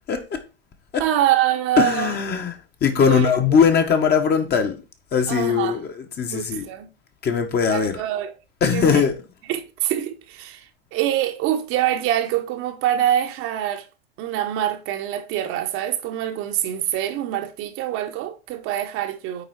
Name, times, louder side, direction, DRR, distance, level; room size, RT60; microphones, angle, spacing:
voice 1, 0.1-0.4 0.9-1.0 1.8-4.8 5.1-6.7 7.2-8.0 8.6-9.1, left 6 dB, 30° left, 1.7 m, -20 dB
voice 2, 1.0-2.2 2.9-3.3 5.3-5.8 6.3-6.9 7.7-8.3 8.7-9.0 9.5-10.6 10.9-13.8 14.2-19.4, right 12 dB, 45° right, 1.1 m, -24 dB
9.0 x 4.3 x 4.6 m
hypercardioid pair, 90°, 31 cm